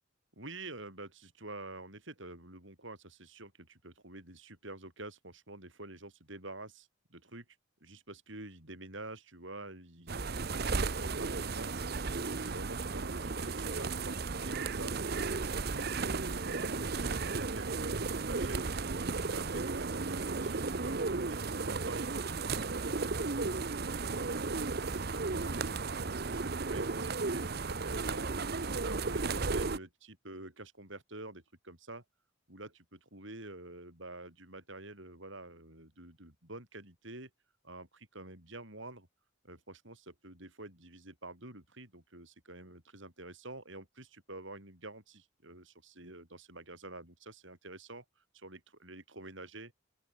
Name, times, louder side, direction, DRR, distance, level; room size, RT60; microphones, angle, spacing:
voice 1, 0.4-7.4 7.8-10.3 10.7-11.7 12.2-15.0 15.7-18.7 19.1-28.3 28.6-32.0 32.5-37.3 37.6-39.1 39.4-48.0 48.3-49.7, right 2 dB, 65° right, 7.2 m, -48 dB
sound 1, 10.1-29.8, right 4 dB, 50° right, 0.8 m, -34 dB
open air
head